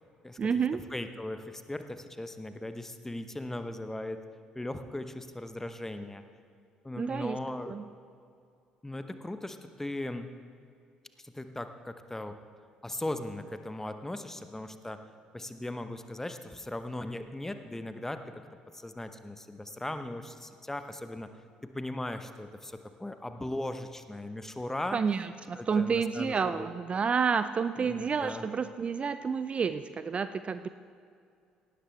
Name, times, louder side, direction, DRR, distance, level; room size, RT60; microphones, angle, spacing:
voice 1, 0.4-0.8 7.0-7.4 7.7-7.8 24.9-30.7, right 6 dB, 30° right, 12 dB, 0.4 m, -29 dB
voice 2, 0.9-4.2 4.5-6.2 6.8-7.8 8.8-10.3 11.2-12.4 12.8-15.0 15.3-18.4 18.7-21.3 21.6-25.0 25.5-26.7 27.8-28.4, left 1 dB, 10° left, 9 dB, 0.9 m, -38 dB
18.0 x 12.0 x 3.4 m, 2.4 s
figure-of-eight pair, 50°, 4 cm